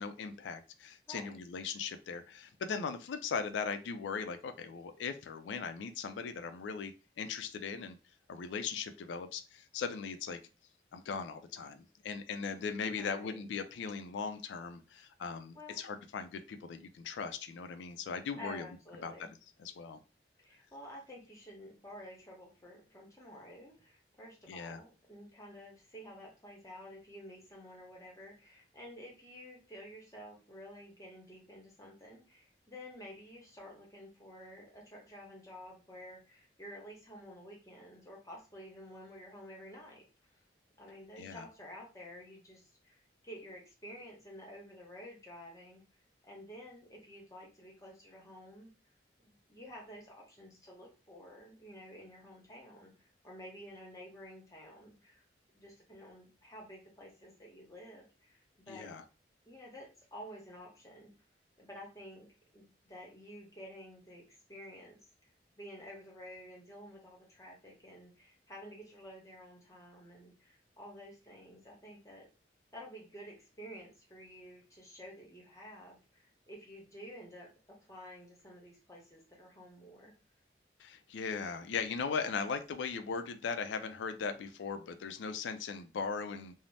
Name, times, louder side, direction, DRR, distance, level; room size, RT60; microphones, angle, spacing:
voice 1, 0.0-8.0 8.3-10.4 10.9-18.7 19.0-19.1 19.6-20.0 24.5-24.8 41.2-41.5 58.7-59.0 80.8-86.5, left 5 dB, 90° left, 8 dB, 0.3 m, -39 dB
voice 2, 13.0-13.4 15.5-15.8 18.4-19.3 20.4-40.4 40.8-45.8 46.3-48.7 49.2-55.2 55.5-58.9 59.4-61.1 61.6-62.3 62.5-64.2 64.5-65.0 65.6-72.3 72.7-77.5 77.9-80.1, equal, 20° left, -2 dB, 0.8 m, -51 dB
2.6 x 2.0 x 3.2 m, 0.32 s
head